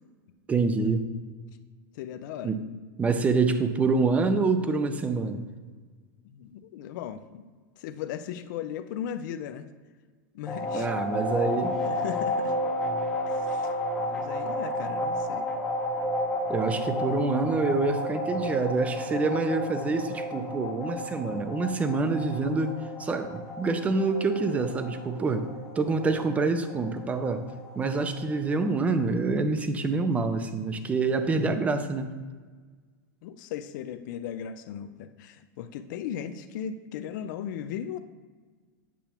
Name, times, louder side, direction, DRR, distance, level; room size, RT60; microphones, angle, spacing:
voice 1, 0.5-1.1 2.4-2.6 3.0-5.4 10.7-11.8 16.5-25.5 25.8-27.4 27.7-32.1, right 3 dB, 10° right, 9 dB, 0.5 m, -26 dB
voice 2, 1.9-2.5 6.2-7.4 7.8-9.7 10.3-10.9 11.9-12.5 13.3-13.7 14.0-15.5 33.2-38.0, left 9 dB, 65° left, 10 dB, 0.5 m, -37 dB
sound 1, 10.5-29.1, left 1 dB, 5° left, 0.9 m, -32 dB
8.4 x 6.8 x 3.0 m, 1.5 s
supercardioid pair, 150°, 11 cm